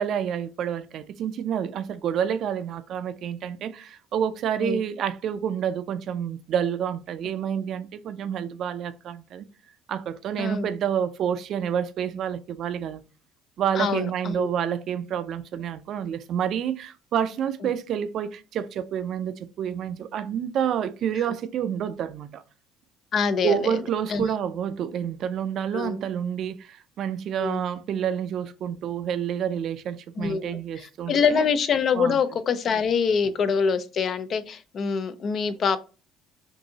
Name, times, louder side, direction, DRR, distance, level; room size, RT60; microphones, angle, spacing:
voice 1, 0.0-3.8 4.1-9.4 9.9-13.0 13.6-22.3 23.4-26.5 27.0-31.5 32.0-32.2, right 8 dB, 55° right, 0.4 m, -28 dB
voice 2, 10.4-10.7 13.7-14.5 23.1-23.8 24.1-24.2 25.7-26.0 27.4-27.6 30.2-35.8, left 6 dB, 45° left, 0.5 m, -25 dB
6.0 x 2.6 x 2.7 m
cardioid pair, 105°, 0 cm